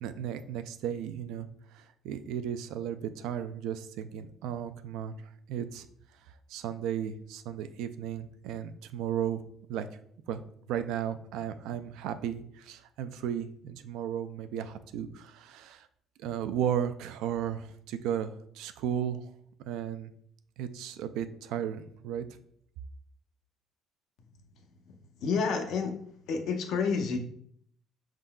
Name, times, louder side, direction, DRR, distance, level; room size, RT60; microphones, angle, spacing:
voice 1, 0.0-5.1 5.5-5.8 6.5-9.4 9.7-9.9 10.3-10.4 10.7-15.9 16.2-19.3 19.7-20.1 20.6-22.3, right 9 dB, 80° right, 10 dB, 0.3 m, -34 dB
voice 2, 24.9-26.0 26.3-27.2, left 5 dB, 65° left, 5 dB, 0.6 m, -30 dB
5.2 x 3.7 x 2.2 m, 0.65 s
cardioid pair, 160°, 0 cm